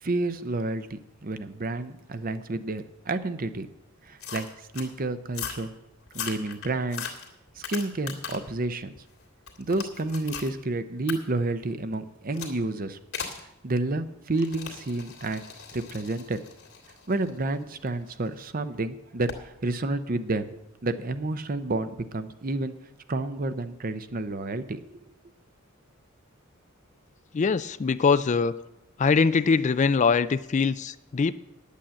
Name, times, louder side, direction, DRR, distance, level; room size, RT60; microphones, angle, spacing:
voice 1, 0.0-3.7 4.0-4.5 4.7-5.7 6.1-7.1 7.6-8.9 9.6-13.0 13.6-15.4 15.7-16.4 17.1-22.7 23.1-25.0, right 2 dB, 45° right, 11 dB, 0.7 m, -30 dB
sound 1, 4.2-4.9 5.3-5.7 6.1-8.5 9.0-10.5 11.1-11.2 12.3-12.6 13.1-13.4 14.3-18.3 19.3-19.5, left 7 dB, 80° left, 2.1 m, -38 dB
voice 2, 27.3-28.6 29.0-31.3, left 5 dB, 35° left, 14 dB, 0.4 m, -23 dB
10.0 x 8.4 x 7.6 m, 0.90 s
head